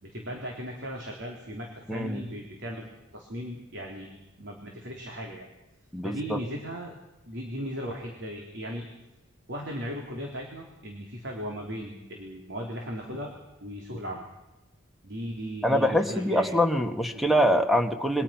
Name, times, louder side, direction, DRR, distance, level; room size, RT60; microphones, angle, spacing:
voice 1, 0.0-2.9 3.1-4.1 4.4-5.5 6.0-6.9 7.3-8.9 9.5-13.3 13.6-14.2 15.0-16.5 17.1-17.3, equal, 55° right, 0 dB, 3.7 m, -37 dB
voice 2, 1.9-2.2 5.9-6.4 15.6-18.2, equal, ahead, 5 dB, 1.6 m, -24 dB
27.5 x 23.5 x 5.9 m, 1.0 s
head